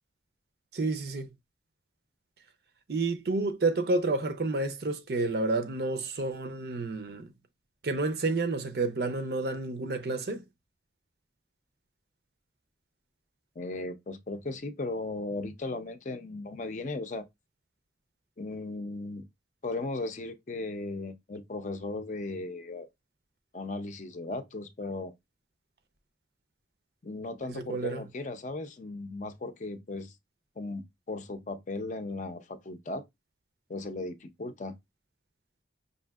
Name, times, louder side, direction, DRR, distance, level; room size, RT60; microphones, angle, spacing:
voice 1, 0.7-1.3 2.9-7.3 7.8-10.4 27.5-28.0, right 3 dB, 60° right, 0.5 m, -30 dB
voice 2, 13.6-17.3 18.4-19.3 19.6-22.9 23.5-25.1 27.0-30.1 30.6-33.0 33.7-34.7, left 2 dB, 40° left, 0.5 m, -36 dB
5.5 x 2.6 x 2.3 m
head